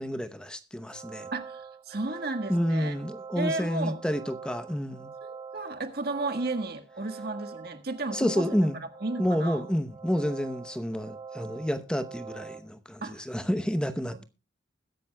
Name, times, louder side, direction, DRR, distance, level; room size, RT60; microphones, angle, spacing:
voice 1, 0.0-1.3 2.5-5.1 8.1-8.8 9.2-14.2, equal, 5° left, 0.8 m, -29 dB
sound 1, 0.8-12.6, right 5 dB, 25° right, 1.6 m, -44 dB
voice 2, 1.3-3.0 3.4-4.0 5.2-8.5 9.0-9.6 13.0-13.2, right 2 dB, 55° right, 1.6 m, -33 dB
21.0 x 10.5 x 2.2 m
head